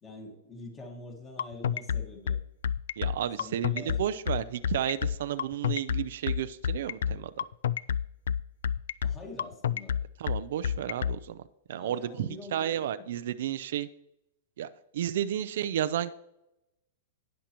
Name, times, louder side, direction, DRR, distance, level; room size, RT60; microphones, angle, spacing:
voice 1, 0.0-2.4 3.4-4.1 9.0-10.0 11.7-12.9 13.3-13.4, left 2 dB, 15° left, 2 dB, 1.6 m, -45 dB
sound 1, 1.4-11.2, left 8 dB, 80° left, 0.3 m, -29 dB
voice 2, 3.0-7.4 10.2-11.4 11.7-13.9 14.6-14.7 14.9-16.2, right 10 dB, 60° right, 13 dB, 0.5 m, -32 dB
18.5 x 6.4 x 3.0 m, 0.86 s
supercardioid pair, 170°, 0 cm